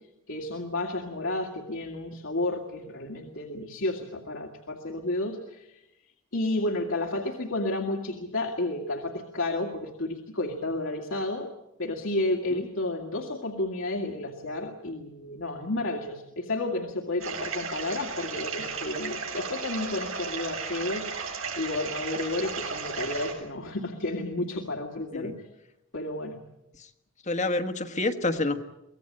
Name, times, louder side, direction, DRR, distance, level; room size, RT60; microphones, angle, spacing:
voice 1, 0.3-5.8 6.3-11.5 11.8-25.5 25.9-26.4, left 2 dB, 75° left, 1 dB, 2.2 m, -31 dB
sound 1, 17.2-23.3, right 5 dB, 80° right, 6.7 m, -35 dB
voice 2, 27.3-28.6, left 2 dB, 35° left, 7 dB, 1.4 m, -28 dB
24.5 x 17.5 x 8.9 m, 0.88 s
head